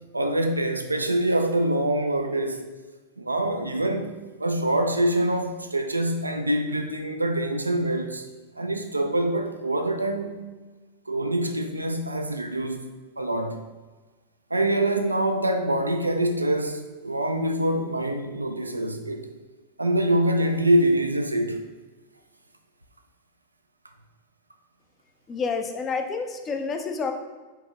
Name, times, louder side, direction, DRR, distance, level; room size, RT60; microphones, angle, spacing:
voice 1, 0.1-2.7 3.2-8.3 8.6-10.5 11.1-12.8 13.2-13.6 14.5-19.3 19.8-21.6, right 1 dB, 85° right, 0.4 m, -25 dB
voice 2, 25.3-27.1, left 5 dB, 25° left, 0.5 m, -29 dB
4.5 x 3.4 x 2.9 m
figure-of-eight pair, 95°, 0 cm